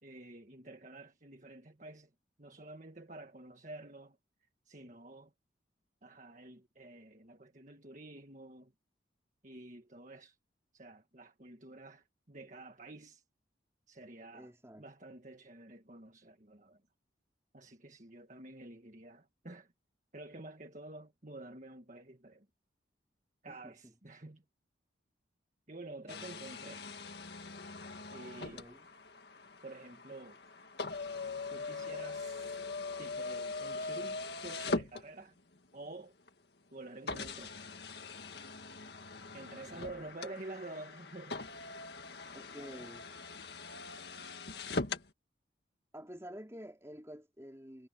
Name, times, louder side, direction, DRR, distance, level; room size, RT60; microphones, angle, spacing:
voice 1, 0.0-2.1 2.4-4.2 4.6-5.3 6.0-8.7 9.4-10.4 10.7-13.2 13.9-14.5 14.8-16.8 17.5-19.7 20.1-22.5 23.4-24.4 25.7-26.9 28.1-28.6 29.6-30.4 31.5-32.5 33.0-35.3 35.7-36.1 36.7-37.7 39.3-41.4, right 2 dB, 40° right, 1.6 m, -49 dB
voice 2, 14.3-14.8 23.5-23.9 28.4-28.9 39.6-40.0 42.3-43.0 45.9-47.9, equal, 15° right, 3.4 m, -50 dB
sound 1, 26.1-35.6 36.3-36.4 37.1-45.1, left 3 dB, 60° left, 1.9 m, -41 dB
head